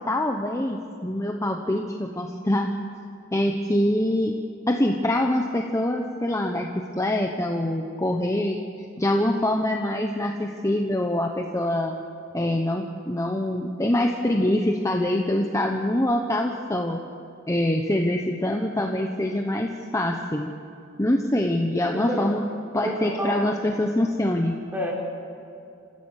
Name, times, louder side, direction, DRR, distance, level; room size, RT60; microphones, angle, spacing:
voice 1, 0.0-2.7 3.3-4.4 4.7-8.6 9.0-12.0 12.3-17.0 17.5-20.5 21.0-22.4 22.7-24.6, left 1 dB, 15° left, 3 dB, 1.0 m, -24 dB
voice 2, 21.9-22.3 22.8-23.4 24.7-24.9, equal, 10° right, -1 dB, 3.8 m, -29 dB
27.5 x 15.5 x 6.5 m, 2.6 s
head